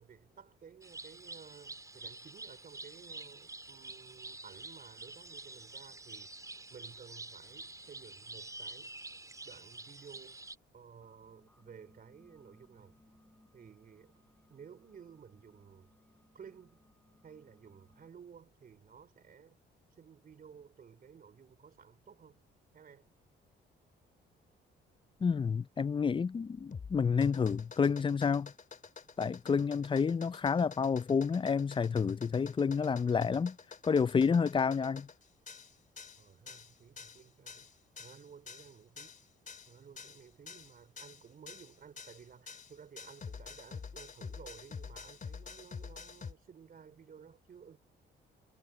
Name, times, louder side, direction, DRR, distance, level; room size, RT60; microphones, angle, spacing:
voice 1, 0.0-6.3 6.7-8.9 9.4-10.4 10.7-13.0 13.5-14.2 14.5-15.9 16.3-16.8 17.2-19.6 20.0-22.4 22.7-23.2 36.2-37.7 38.0-39.2 39.7-47.8, right 7 dB, 45° right, 3.2 m, -55 dB
sound 1, 0.8-10.5, right 3 dB, 15° right, 4.8 m, -48 dB
sound 2, 11.0-18.1, left 1 dB, 10° left, 8.0 m, -67 dB
voice 2, 25.2-28.5 29.2-33.6 33.8-35.1, left 6 dB, 25° left, 0.5 m, -29 dB
sound 3, 26.6-46.3, left 5 dB, 40° left, 3.4 m, -48 dB
cardioid pair, 90°, 20 cm